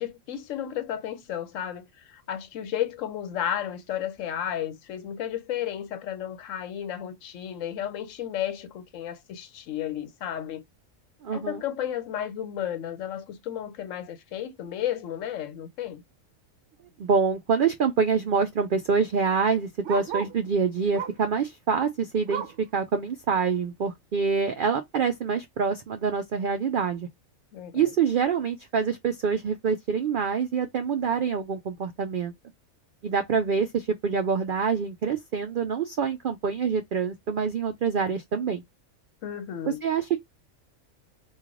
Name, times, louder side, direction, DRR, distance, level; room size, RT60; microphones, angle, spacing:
voice 1, 0.0-10.6 11.3-16.0 27.5-27.9 39.2-39.8, left 10 dB, 75° left, 0.9 m, -33 dB
voice 2, 11.2-11.6 17.0-22.4 22.7-27.1 27.7-32.3 33.0-38.6 39.6-40.2, right 6 dB, 80° right, 0.4 m, -26 dB
Bark, 16.7-17.0 17.3-17.4 17.6-20.5 20.9-21.3 21.7-22.7 23.2-23.3 23.7-23.8 24.4-24.5, right 7 dB, 65° right, 0.9 m, -37 dB
3.1 x 2.4 x 3.6 m
omnidirectional pair, 1.4 m